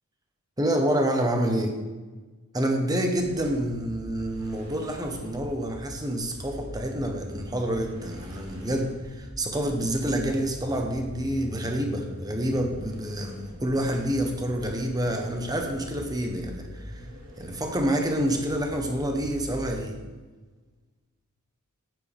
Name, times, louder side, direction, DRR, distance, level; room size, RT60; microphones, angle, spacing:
voice 1, 0.6-1.7 2.5-17.1 17.4-20.0, right 1 dB, 15° right, 3 dB, 1.0 m, -28 dB
sound 1, 3.1-19.8, equal, 70° right, 3.0 m, -43 dB
9.1 x 7.6 x 3.5 m, 1.3 s
head